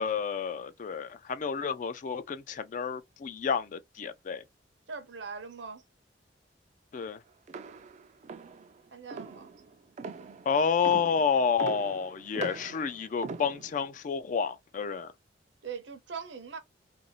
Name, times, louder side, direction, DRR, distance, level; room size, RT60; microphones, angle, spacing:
voice 1, 0.0-4.4 6.9-7.2 10.5-15.1, left 6 dB, 45° left, 0.3 m, -30 dB
voice 2, 4.9-5.8 8.9-9.5 15.6-16.6, right 5 dB, 70° right, 0.7 m, -41 dB
sound 1, 7.5-14.0, right 4 dB, 40° right, 0.3 m, -42 dB
2.6 x 2.4 x 2.9 m
head